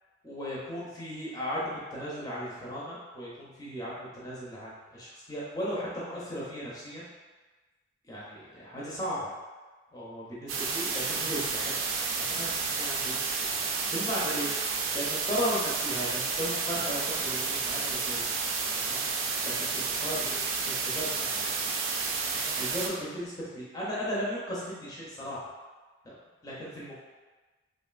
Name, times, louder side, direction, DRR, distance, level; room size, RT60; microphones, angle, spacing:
voice 1, 0.2-7.1 8.1-9.3 9.9-11.7 12.3-13.6 13.9-18.4 18.7-21.4 22.6-25.5 26.4-26.9, equal, 20° left, -7 dB, 0.5 m, -36 dB
sound 1, 10.5-22.9, right 4 dB, 80° right, 0.4 m, -31 dB
3.0 x 2.4 x 2.4 m, 1.3 s
head